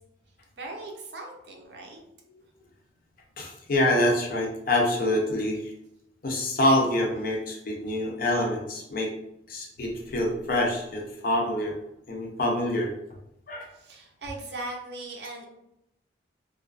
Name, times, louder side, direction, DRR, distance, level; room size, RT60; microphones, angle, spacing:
voice 1, 0.6-2.0 13.7-15.5, right 2 dB, 60° right, 1 dB, 0.5 m, -39 dB
voice 2, 3.4-5.7 6.2-9.1 9.5-11.8 12.1-12.9 13.5-13.7, left 1 dB, 50° left, 1 dB, 0.5 m, -26 dB
2.4 x 2.3 x 2.4 m, 0.82 s
head